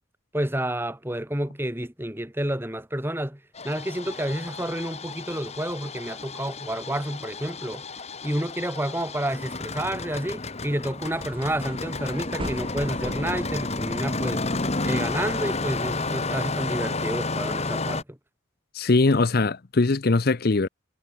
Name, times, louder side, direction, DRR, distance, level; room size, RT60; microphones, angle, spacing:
voice 1, 0.3-7.8 8.2-14.4 14.8-18.2, right 1 dB, 10° right, 2.1 m, -30 dB
Engine starting, 3.5-18.0, left 3 dB, 30° left, 1.8 m, -31 dB
sound 1, 11.1-16.1, right 1 dB, 25° right, 6.9 m, -40 dB
voice 2, 18.7-20.7, left 3 dB, 50° left, 0.7 m, -21 dB
head